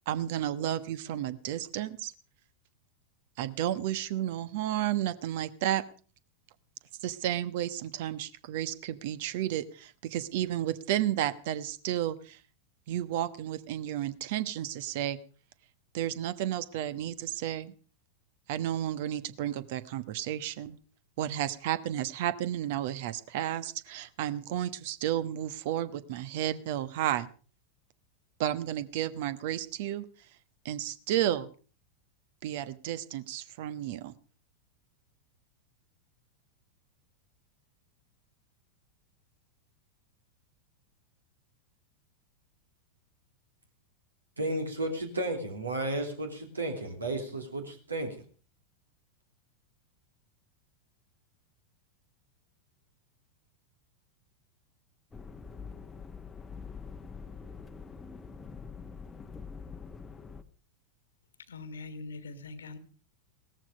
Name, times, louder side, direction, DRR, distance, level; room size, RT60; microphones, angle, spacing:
voice 1, 0.1-2.1 3.4-5.8 7.0-12.4 12.9-15.2 15.9-17.7 18.5-20.8 21.2-27.3 28.4-30.1 30.6-31.5 32.4-34.1, right 12 dB, 50° right, 1.2 m, -32 dB
voice 2, 44.4-48.2, right 1 dB, 75° right, 3.4 m, -33 dB
sound 1, 55.1-60.4, left 5 dB, 15° left, 1.1 m, -45 dB
voice 3, 61.5-62.8, left 3 dB, 70° left, 1.6 m, -42 dB
18.0 x 14.0 x 5.1 m
figure-of-eight pair, 90°, 0 cm